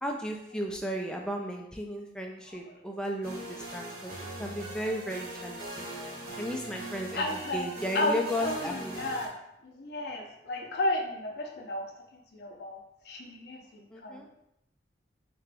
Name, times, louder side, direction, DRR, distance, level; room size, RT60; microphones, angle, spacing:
voice 1, 0.0-6.1 6.4-7.2 7.5-9.1 13.9-14.3, equal, 5° left, 1 dB, 0.4 m, -35 dB
sound 1, 3.2-9.3, right 1 dB, 55° right, 0.9 m, -41 dB
voice 2, 7.1-7.7 7.9-9.3 9.6-11.9 12.3-12.8 13.1-13.6 14.0-14.3, left 1 dB, 60° left, 1 dB, 0.5 m, -32 dB
3.4 x 2.9 x 3.3 m, 0.78 s
head